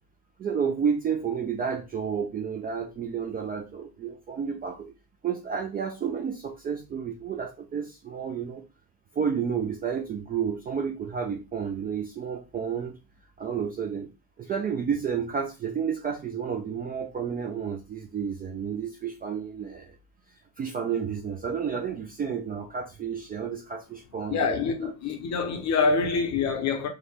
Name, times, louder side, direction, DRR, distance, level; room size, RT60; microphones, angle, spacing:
voice 1, 0.4-4.9 5.2-8.6 9.1-13.0 13.4-14.1 14.4-20.0 20.6-24.6, right 7 dB, 20° right, 0.4 m, -31 dB
voice 2, 24.3-26.9, left 4 dB, 35° left, 0.7 m, -26 dB
3.9 x 2.0 x 3.3 m
figure-of-eight pair, 65°, 48 cm